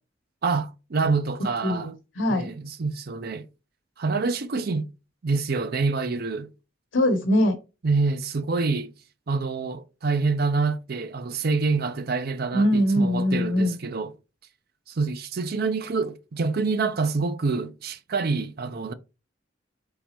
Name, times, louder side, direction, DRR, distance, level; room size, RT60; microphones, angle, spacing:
voice 1, 0.4-1.9 2.3-3.5 4.0-4.9 5.2-6.5 7.8-8.9 9.3-14.1 14.9-18.9, right 4 dB, 55° right, 0.5 m, -26 dB
voice 2, 1.6-2.5 6.9-7.6 12.5-13.8, equal, 75° left, 1.0 m, -22 dB
4.0 x 3.7 x 2.9 m
head